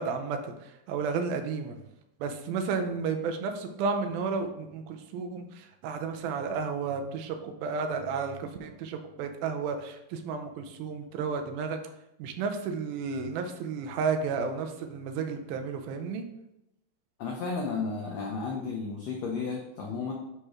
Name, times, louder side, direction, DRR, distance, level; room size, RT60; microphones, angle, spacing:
voice 1, 0.0-1.8 2.2-11.8 12.2-16.3, right 5 dB, 80° right, 6 dB, 2.5 m, -32 dB
voice 2, 17.2-20.1, left 4 dB, 85° left, -1 dB, 1.4 m, -33 dB
9.9 x 4.3 x 3.6 m, 0.88 s
omnidirectional pair, 4.3 m